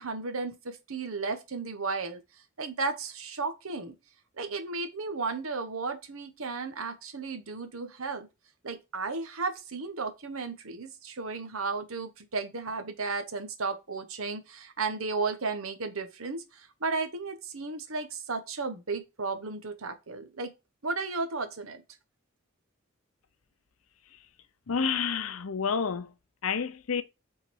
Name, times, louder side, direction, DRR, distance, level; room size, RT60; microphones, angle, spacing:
voice 1, 0.0-2.2 2.6-3.9 4.4-8.3 8.6-20.5 20.8-21.8, right 4 dB, 85° right, 1.1 m, -34 dB
voice 2, 24.7-26.1 26.4-27.0, left 6 dB, 90° left, 0.6 m, -29 dB
6.9 x 3.9 x 4.6 m
head